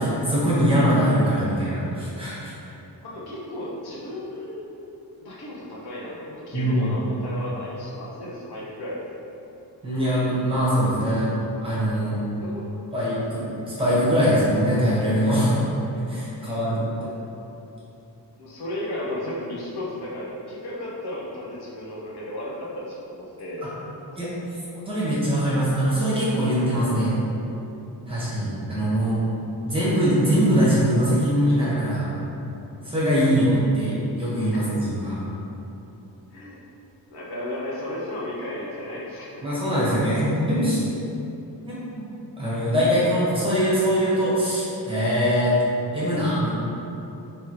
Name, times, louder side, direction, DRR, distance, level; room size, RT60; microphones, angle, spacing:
voice 1, 0.0-2.5 6.5-7.0 9.8-11.3 11.6-12.2 12.9-15.5 16.1-16.8 24.2-24.3 24.9-27.1 28.1-29.2 29.6-32.0 32.8-35.2 39.4-40.8 41.6-42.0 42.4-45.5 45.9-46.5, equal, 15° right, -10 dB, 1.3 m, -22 dB
voice 2, 3.0-4.7 5.2-9.0 12.4-12.7 16.4-16.6 17.0-17.1 18.4-23.6 23.9-24.2 25.1-25.2 28.0-28.2 34.5-34.7 36.3-36.6 37.1-39.6, left 1 dB, 65° left, -6 dB, 1.0 m, -34 dB
3.4 x 3.2 x 4.5 m, 2.9 s
wide cardioid pair, 160°, 42 cm